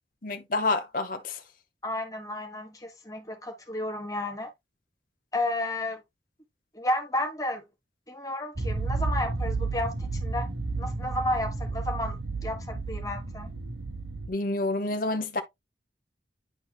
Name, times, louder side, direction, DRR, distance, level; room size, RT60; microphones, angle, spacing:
voice 1, 0.2-1.4 14.3-15.4, left 2 dB, 50° left, 1.1 m, -28 dB
voice 2, 1.8-4.5 5.3-6.0 6.7-7.6 8.1-10.5 10.8-12.1 12.4-13.5, left 1 dB, 20° left, 1.5 m, -32 dB
sound 1, 8.6-14.3, right 3 dB, 55° right, 1.2 m, -32 dB
10.5 x 4.0 x 2.3 m
head